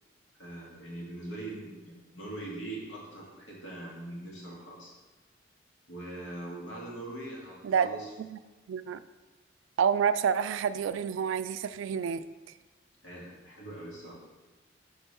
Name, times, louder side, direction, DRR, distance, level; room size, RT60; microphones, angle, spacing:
voice 1, 0.4-4.9 5.9-8.1 13.0-14.2, right 1 dB, 85° left, -4 dB, 1.9 m, -42 dB
voice 2, 8.7-9.0 9.8-12.3, right 7 dB, 85° right, 13 dB, 0.3 m, -28 dB
5.3 x 5.1 x 4.3 m, 1.2 s
head